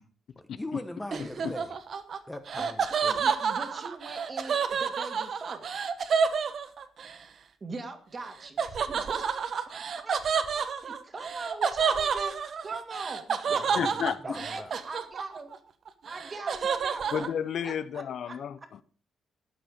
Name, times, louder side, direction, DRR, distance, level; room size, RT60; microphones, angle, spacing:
voice 1, 0.4-1.7 2.3-3.2 13.5-14.7, left 1 dB, 10° left, 1.1 m, -41 dB
Laughter, 1.1-7.2 8.6-15.6 15.9-17.3, right 6 dB, 50° right, 1.2 m, -29 dB
voice 2, 1.2-1.5 13.8-14.4 17.1-18.8, left 8 dB, 60° left, 0.7 m, -32 dB
voice 3, 3.1-5.6 7.6-12.3 12.6-13.7 14.2-15.5 16.0-17.3 17.6-18.4, right 3 dB, 30° right, 2.1 m, -41 dB
12.5 x 9.1 x 5.0 m
cardioid pair, 140°, 0 cm